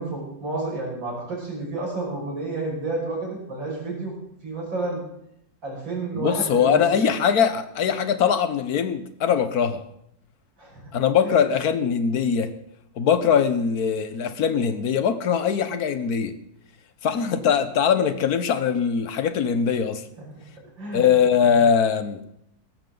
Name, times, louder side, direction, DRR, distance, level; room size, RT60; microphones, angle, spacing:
voice 1, 0.0-4.1 4.4-5.0 5.6-6.8 10.6-10.8 11.2-11.4 20.4-20.5 20.8-21.1, right 2 dB, 80° right, -3 dB, 6.7 m, -30 dB
voice 2, 6.1-9.8 10.9-12.5 13.0-16.3 17.0-20.0 20.9-22.2, left 7 dB, 55° left, 11 dB, 1.4 m, -21 dB
18.0 x 14.0 x 4.0 m, 0.75 s
omnidirectional pair, 2.0 m